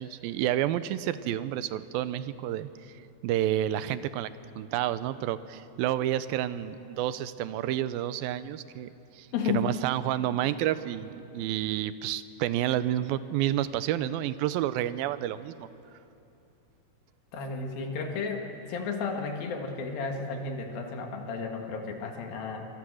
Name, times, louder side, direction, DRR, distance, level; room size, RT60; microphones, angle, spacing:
voice 1, 0.0-2.7 3.2-4.3 4.6-15.7, right 12 dB, 90° right, 14 dB, 2.5 m, -30 dB
voice 2, 9.3-9.7 17.3-22.7, left 5 dB, 80° left, 2 dB, 3.6 m, -33 dB
25.0 x 25.0 x 6.4 m, 2.8 s
omnidirectional pair, 4.1 m